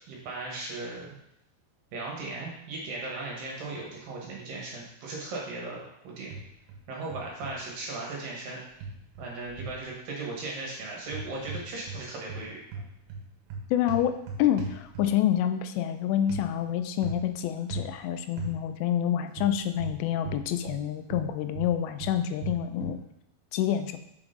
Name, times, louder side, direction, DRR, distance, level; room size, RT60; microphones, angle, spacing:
voice 1, 0.1-1.1 1.9-6.3 6.9-8.6 9.2-12.6, right 2 dB, 65° right, -2 dB, 2.6 m, -37 dB
sound 1, 6.3-6.8 7.1-7.5 8.8-9.8 11.0-12.0 12.3-15.3 16.3-16.5 17.0-17.3 17.7-17.9 18.4-18.6 19.4-20.8 21.1-23.0, right 3 dB, 85° right, 3.3 m, -38 dB
voice 2, 13.7-23.0 23.5-24.0, left 10 dB, 85° left, 9 dB, 2.8 m, -27 dB
6.1 x 6.0 x 3.8 m, 0.79 s
omnidirectional pair, 4.9 m